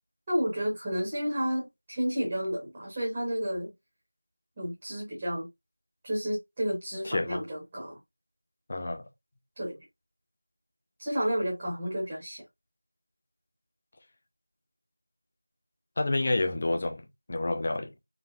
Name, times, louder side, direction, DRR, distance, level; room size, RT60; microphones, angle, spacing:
voice 1, 0.3-3.7 4.6-5.5 6.0-8.0 9.6-9.8 11.0-12.4, equal, 10° right, 0.8 m, -31 dB
voice 2, 7.0-7.4 8.7-9.0 16.0-17.0 17.3-17.9, left 2 dB, 20° left, 0.4 m, -28 dB
3.9 x 3.2 x 2.5 m
figure-of-eight pair, 175°, 0 cm